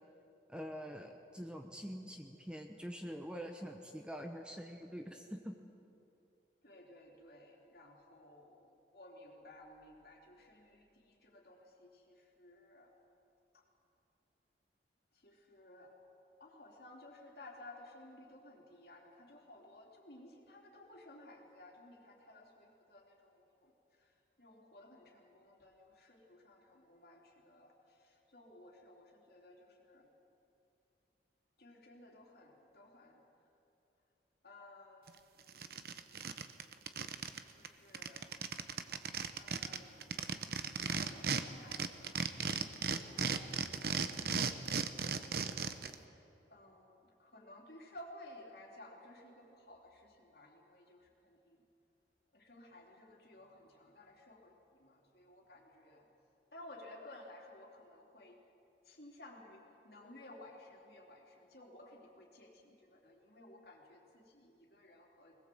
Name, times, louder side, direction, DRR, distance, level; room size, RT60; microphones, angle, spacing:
voice 1, 0.5-5.5, equal, 5° right, 4 dB, 1.0 m, -45 dB
voice 2, 6.6-12.9 13.5-13.6 15.2-15.9 16.4-23.7 24.0-24.1 24.4-30.1 31.6-33.2 34.4-36.2 37.5-38.2 39.4-40.4 40.8-44.3 45.1-46.0 46.5-51.6 52.3-56.1 56.5-58.4 58.8-65.4, left 1 dB, 55° left, -1 dB, 3.7 m, -57 dB
sound 1, 35.1-35.2 35.5-37.4 37.6-37.7 37.9-41.4 41.7-45.9, right 5 dB, 55° right, 1.0 m, -36 dB
22.5 x 20.5 x 7.9 m, 2.8 s
head